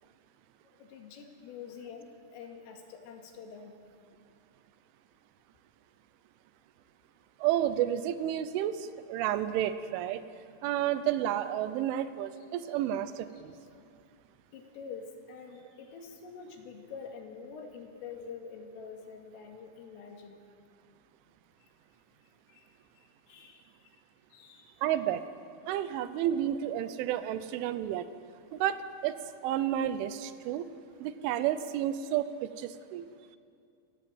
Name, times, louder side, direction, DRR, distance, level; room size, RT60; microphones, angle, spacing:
voice 1, 0.8-3.8 12.4-12.8 13.3-13.8 14.5-20.4 22.5-23.9 24.3-24.8 30.4-30.5, left 6 dB, 90° left, 3 dB, 4.8 m, -47 dB
voice 2, 7.4-10.2 10.6-13.5 24.8-25.2 25.7-28.1 28.5-29.2 29.4-30.7 31.0-33.1, right 11 dB, 80° right, 12 dB, 3.2 m, -31 dB
28.0 x 16.5 x 7.9 m, 2.4 s
omnidirectional pair, 5.7 m